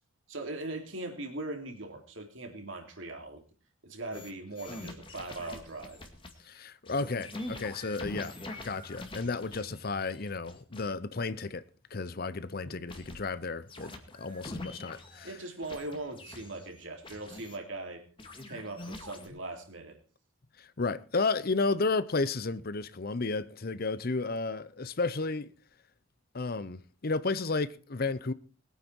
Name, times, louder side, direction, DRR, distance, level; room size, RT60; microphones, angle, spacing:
voice 1, 0.3-3.4 3.8-6.0 12.7-12.8 15.2-18.0 18.5-20.0, right 2 dB, 65° right, 3.2 m, -40 dB
sound 1, 4.1-4.3 4.6-6.3 6.9-10.9 12.9-13.4 13.7-15.3 15.6-17.6 18.2-19.3, left 1 dB, 25° left, 2.1 m, -44 dB
voice 2, 6.4-11.6 11.9-15.3 20.6-25.5 26.3-28.3, left 3 dB, 45° left, 0.7 m, -32 dB
21.0 x 9.4 x 4.6 m
head